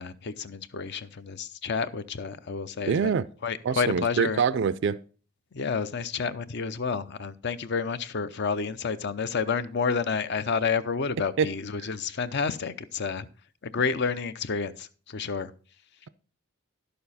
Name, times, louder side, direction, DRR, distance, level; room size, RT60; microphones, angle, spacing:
voice 1, 0.0-4.4 5.5-13.3 13.6-15.5, left 5 dB, 50° left, 0.5 m, -30 dB
voice 2, 2.9-3.3 3.6-5.0 11.4-11.5, right 6 dB, 55° right, 0.3 m, -24 dB
11.0 x 6.8 x 4.1 m
head